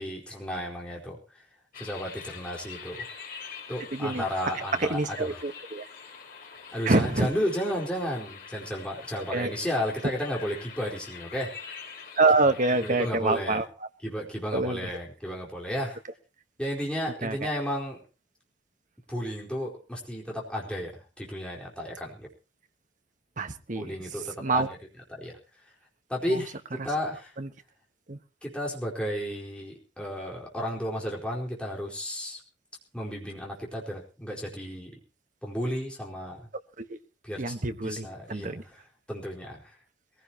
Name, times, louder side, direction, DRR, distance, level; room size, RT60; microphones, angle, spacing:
voice 1, 0.0-1.4 1.7-3.1 3.7-5.3 6.7-11.5 12.8-13.6 14.0-16.0 16.6-18.0 19.1-22.3 23.7-24.8 25.1-25.3 26.1-27.3 28.4-32.4 32.9-34.9 35.4-36.5 37.2-37.5 37.8-38.8 39.1-39.8, equal, 5° left, -2 dB, 4.5 m, -33 dB
sound 1, 1.7-13.1, left 6 dB, 55° left, 4.5 m, -44 dB
voice 2, 3.9-4.2 4.5-5.8 6.8-7.3 9.3-9.5 12.2-13.7 14.5-14.9 17.2-17.5 23.4-23.9 24.4-24.7 26.3-26.4 26.8-26.9 27.4-27.5 28.1-28.2 36.8-37.0 37.4-38.6, right 3 dB, 45° right, 8 dB, 1.3 m, -26 dB
22.0 x 16.0 x 2.9 m, 0.34 s
head